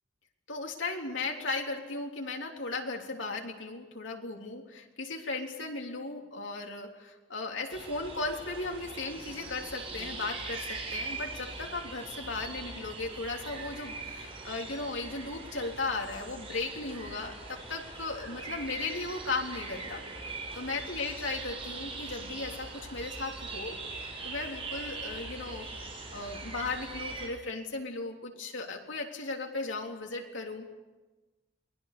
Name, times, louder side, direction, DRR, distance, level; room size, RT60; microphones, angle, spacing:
voice 1, 0.5-20.0 20.5-25.7 26.1-30.7, left 3 dB, 90° left, 1 dB, 3.5 m, -36 dB
sound 1, 7.7-27.3, right 3 dB, 30° right, 6.1 m, -41 dB
28.5 x 21.5 x 6.9 m, 1.2 s
head